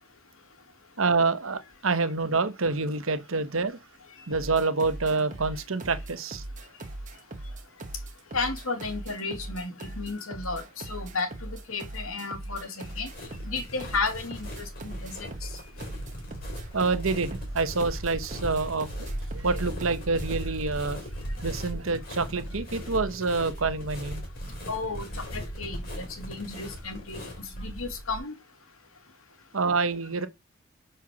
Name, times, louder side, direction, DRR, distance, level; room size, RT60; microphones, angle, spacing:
voice 1, 1.0-3.8 4.3-6.4 16.7-21.0 21.4-24.2 29.5-30.3, right 3 dB, 75° right, 1.0 m, -27 dB
sound 1, 4.3-20.6, right 1 dB, 35° right, 1.0 m, -40 dB
voice 2, 8.3-13.1 13.5-15.5 24.7-25.1 25.3-28.3, left 3 dB, 80° left, 2.1 m, -33 dB
sound 2, 12.8-28.2, equal, 45° left, 3.7 m, -38 dB
6.2 x 4.5 x 5.9 m
head